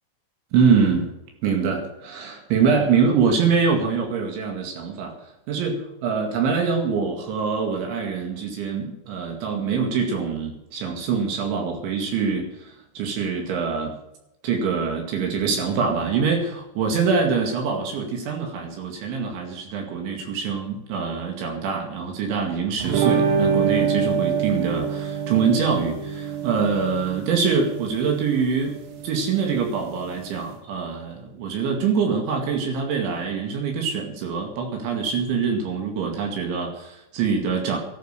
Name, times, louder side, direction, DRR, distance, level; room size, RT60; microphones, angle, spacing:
voice 1, 0.5-1.1 1.4-5.1 5.5-13.9 14.4-28.8 29.0-37.8, right 5 dB, 70° right, 2 dB, 4.5 m, -24 dB
sound 1, 22.8-30.5, right 6 dB, 85° right, 4.8 m, -26 dB
15.5 x 11.0 x 6.7 m, 0.85 s
omnidirectional pair, 5.7 m